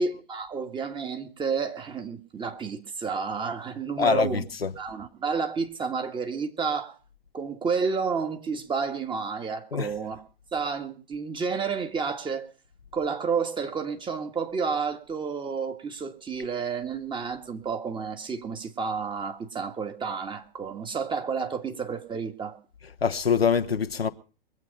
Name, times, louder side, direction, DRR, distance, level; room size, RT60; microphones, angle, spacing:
voice 1, 0.0-4.5 4.8-6.9 7.3-10.2 10.5-12.5 12.9-22.6, right 5 dB, 15° right, 1.8 m, -30 dB
voice 2, 4.0-4.8 9.7-10.0 22.8-24.1, left 6 dB, 90° left, 1.1 m, -25 dB
22.5 x 8.5 x 5.3 m
figure-of-eight pair, 105°, 29 cm